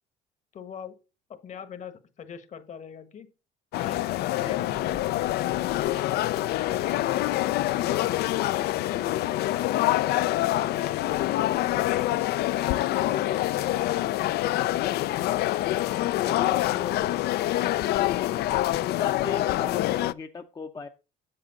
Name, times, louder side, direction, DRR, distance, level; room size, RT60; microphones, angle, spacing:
voice 1, 0.5-0.9 1.3-3.3 3.8-6.2 6.5-7.4 10.6-12.1 12.5-13.8 16.2-17.5, left 6 dB, 45° left, 10 dB, 1.3 m, -43 dB
sound 1, 3.7-20.1, left 15 dB, 70° left, 0.4 m, -26 dB
voice 2, 16.2-16.6 19.0-20.9, left 4 dB, 25° left, 5 dB, 0.6 m, -38 dB
7.7 x 7.3 x 3.9 m, 0.31 s
cardioid pair, 110°, 17 cm